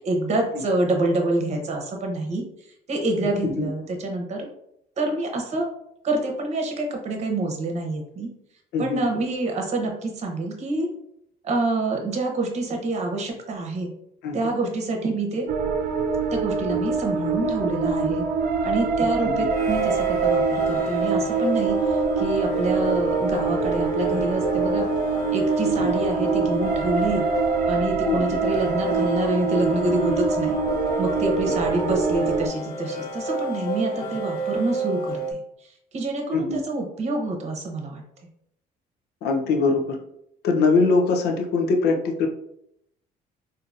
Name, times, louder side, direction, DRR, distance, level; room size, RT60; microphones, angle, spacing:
voice 1, 0.0-2.4 2.9-4.5 5.0-5.7 6.0-8.3 8.8-10.9 11.4-13.9 14.3-15.5 16.3-18.2 18.6-24.9 25.3-27.2 27.7-30.6 31.0-35.4 35.9-38.0, right 2 dB, 40° right, 2 dB, 0.9 m, -27 dB
voice 2, 8.7-9.1 14.2-14.5 19.2-19.5 25.8-25.9 28.1-28.2 36.3-36.6 39.2-40.0 40.4-42.3, left 4 dB, 75° left, 2 dB, 0.6 m, -22 dB
sound 1, 15.5-32.5, right 4 dB, 65° right, 0.4 m, -25 dB
sound 2, 16.9-17.0 19.5-35.3, right 2 dB, 60° left, 1.0 m, -29 dB
3.9 x 2.7 x 2.5 m, 0.75 s
cardioid pair, 110°, 17 cm